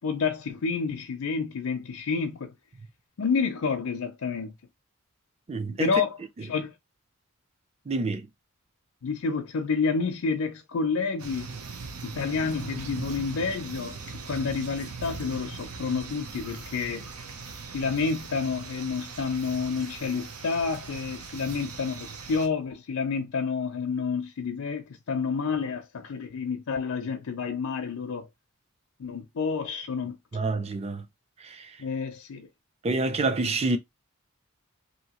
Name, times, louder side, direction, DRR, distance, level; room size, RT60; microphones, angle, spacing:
voice 1, 0.0-2.5 3.2-4.5 5.8-6.2 6.5-6.7 9.0-11.5 12.0-17.1 17.7-28.3 29.0-30.2 31.8-32.5, left 5 dB, 70° left, 0.5 m, -29 dB
voice 2, 5.5-5.9 7.9-8.3 30.3-31.0 31.4-31.8 32.8-33.8, right 3 dB, 30° right, 0.4 m, -27 dB
sound 1, 11.2-22.5, right 4 dB, 85° right, 0.7 m, -40 dB
2.8 x 2.6 x 2.9 m
head